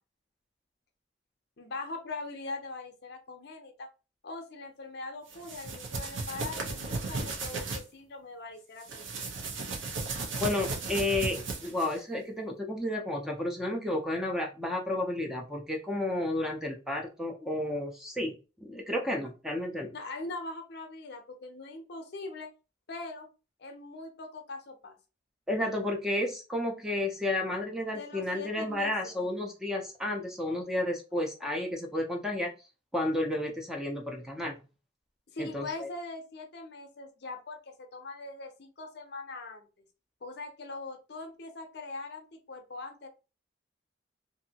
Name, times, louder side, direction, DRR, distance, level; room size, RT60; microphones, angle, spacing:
voice 1, 1.6-3.9 4.2-9.4 19.9-22.5 22.9-23.3 23.6-25.0 27.9-28.9 29.2-29.3 35.3-39.9 40.2-43.1, left 3 dB, 55° left, 5 dB, 0.6 m, -41 dB
sound 1, 5.3-7.8 8.8-12.0, right 3 dB, 70° right, 0.7 m, -35 dB
voice 2, 10.4-19.9 25.5-32.5 32.9-34.6 35.4-35.9, left 1 dB, 5° right, 1 dB, 0.4 m, -32 dB
2.6 x 2.6 x 2.7 m, 0.32 s
head